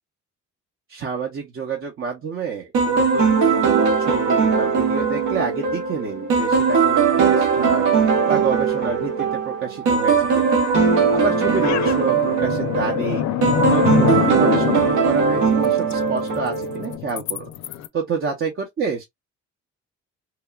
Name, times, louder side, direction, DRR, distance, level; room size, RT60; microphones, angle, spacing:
voice 1, 0.9-7.9 8.3-10.5 11.1-13.2 13.7-17.5 17.9-19.0, right 5 dB, 45° right, 0.7 m, -28 dB
sound 1, 2.7-17.0, right 5 dB, 80° right, 1.0 m, -20 dB
sound 2, 10.8-17.9, left 10 dB, 65° left, 0.4 m, -26 dB
2.9 x 2.2 x 2.2 m
cardioid pair, 90°, 30 cm